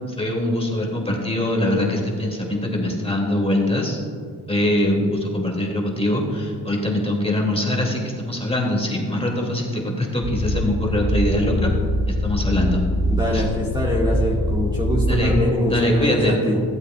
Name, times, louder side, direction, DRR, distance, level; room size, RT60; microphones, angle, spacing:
voice 1, 0.2-4.0 4.5-11.7 12.1-12.8 13.3-13.4 15.1-15.3 15.7-16.4, left 1 dB, 15° left, -1 dB, 2.5 m, -22 dB
sound 1, 10.2-15.3, equal, 70° right, 1.5 m, -23 dB
voice 2, 13.1-16.6, left 1 dB, 10° right, -5 dB, 1.8 m, -23 dB
15.5 x 8.1 x 2.4 m, 2.3 s
cardioid pair, 60°, 41 cm